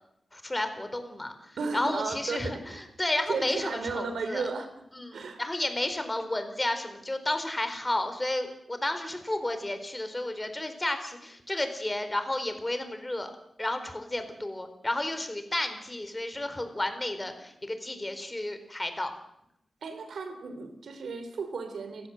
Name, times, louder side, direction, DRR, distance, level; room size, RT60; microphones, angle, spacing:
voice 1, 0.3-2.6 3.0-4.4 4.9-13.3 13.6-19.1, left 1 dB, 20° left, 9 dB, 4.3 m, -32 dB
voice 2, 1.6-2.9 3.3-4.7 5.1-5.4 19.8-22.1, right 4 dB, 90° right, 9 dB, 3.5 m, -34 dB
29.5 x 16.0 x 7.9 m, 0.78 s
wide cardioid pair, 85°, 0 cm